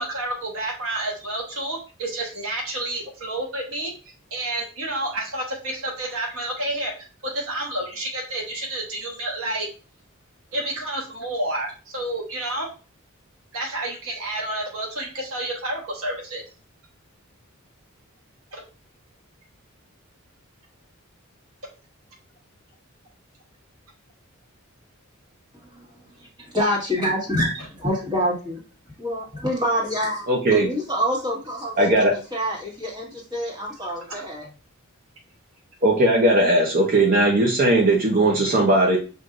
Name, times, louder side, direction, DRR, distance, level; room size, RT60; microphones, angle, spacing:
voice 1, 0.0-3.9 4.3-6.9 7.2-9.7 10.5-12.7 13.5-16.4 18.5-18.6 34.1-34.2, right 1 dB, 85° right, -1 dB, 1.1 m, -29 dB
voice 2, 26.2-28.6 29.0-30.2 30.5-34.5, equal, 20° right, -2 dB, 1.5 m, -26 dB
voice 3, 30.3-30.7 31.8-32.1 35.8-39.0, right 1 dB, 45° right, -1 dB, 0.7 m, -18 dB
6.0 x 2.6 x 2.5 m, 0.34 s
head